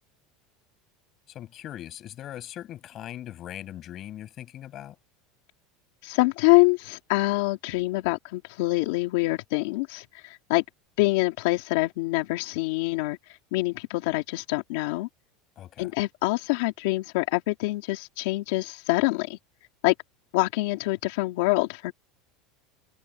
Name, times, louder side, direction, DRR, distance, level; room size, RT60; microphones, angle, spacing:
voice 1, 1.3-5.0 15.6-15.9, left 12 dB, 30° left, 6.1 m, -40 dB
voice 2, 6.0-10.6 11.0-15.1 15.8-19.4 19.8-19.9 20.3-21.9, left 21 dB, 70° left, 2.1 m, -25 dB
supercardioid pair, 160°, 0 cm